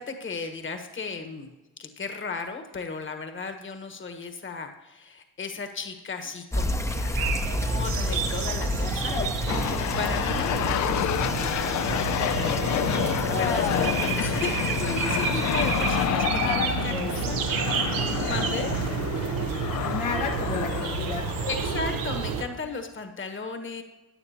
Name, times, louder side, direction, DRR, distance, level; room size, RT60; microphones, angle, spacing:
voice 1, 0.0-1.5 1.8-9.2 10.0-12.7 12.9-16.9 17.3-17.4 17.9-18.9 21.5-23.8, left 4 dB, 35° left, 6 dB, 1.3 m, -35 dB
sound 1, 6.5-16.1, left 1 dB, 10° left, 0.7 m, -31 dB
sound 2, 6.9-22.4, right 6 dB, 90° right, 1.0 m, -30 dB
voice 2, 9.1-9.9 13.3-14.0 14.3-14.4 16.2-17.4 18.7-18.8 19.8-21.3, left 5 dB, 80° left, 0 dB, 1.4 m, -32 dB
sound 3, 9.5-22.6, left 11 dB, 60° left, 0.5 m, -29 dB
14.5 x 9.3 x 2.9 m, 1.1 s
cardioid pair, 80°, 33 cm